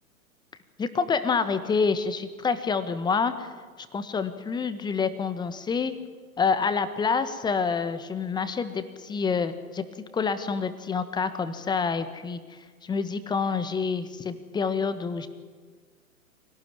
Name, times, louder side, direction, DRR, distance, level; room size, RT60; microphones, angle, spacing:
voice 1, 0.8-3.5 3.9-5.9 6.4-9.8 10.1-12.4 12.8-15.3, left 5 dB, 10° left, 11 dB, 1.3 m, -27 dB
25.0 x 18.0 x 9.6 m, 1.6 s
figure-of-eight pair, 115°, 44 cm